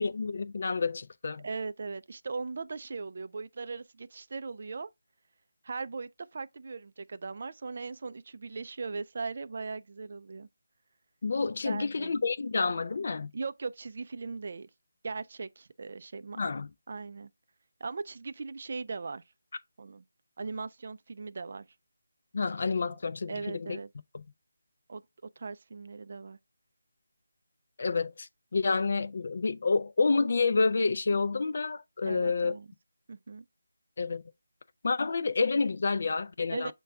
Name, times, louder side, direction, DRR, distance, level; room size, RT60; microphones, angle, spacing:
voice 1, 0.0-1.4 11.2-13.3 16.4-16.7 22.3-23.8 27.8-32.5 34.0-34.2 34.8-36.7, left 4 dB, 50° left, 0.4 m, -29 dB
voice 2, 1.4-4.9 5.6-10.5 11.6-12.1 13.3-14.7 15.0-16.4 16.9-17.3 17.8-19.2 19.8-20.0 20.4-21.7 23.3-23.9 24.9-25.0 25.4-26.4 32.0-32.7 33.1-33.5 36.5-36.7, right 4 dB, 50° right, 0.3 m, -39 dB
6.6 x 2.2 x 3.5 m
figure-of-eight pair, 165°, 0 cm